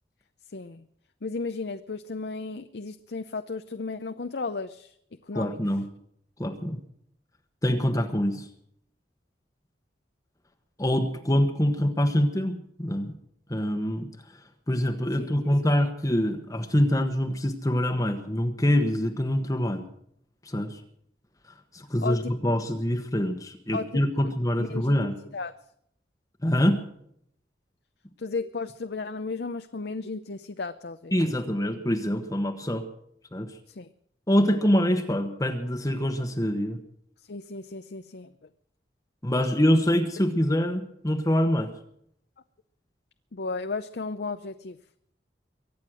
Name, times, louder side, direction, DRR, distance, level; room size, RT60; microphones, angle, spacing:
voice 1, 0.5-0.8 1.2-5.0 5.3-5.6 15.2-15.3 22.0-22.3 23.7-24.3 24.6-25.0 25.3-25.5 28.2-31.2 33.7-33.9 37.3-38.3 43.3-44.8, left 4 dB, 65° left, 9 dB, 0.6 m, -34 dB
voice 2, 5.3-5.8 6.4-6.8 7.6-8.5 10.8-13.1 13.5-14.1 14.7-19.9 20.4-20.8 21.7-25.2 26.4-26.8 31.1-32.9 33.3-33.5 34.3-36.8 39.2-41.7, equal, 20° left, 6 dB, 1.2 m, -25 dB
23.5 x 9.5 x 6.3 m, 0.70 s
head